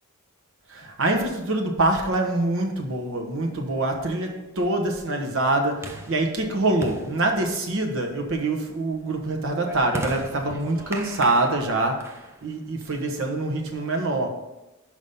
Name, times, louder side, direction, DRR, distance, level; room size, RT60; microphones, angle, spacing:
voice 1, 0.7-12.1 12.4-14.3, right 2 dB, 65° right, 1.0 m, -25 dB
sound 1, 3.1-13.5, right 1 dB, 10° right, 0.5 m, -40 dB
5.6 x 5.0 x 5.2 m
head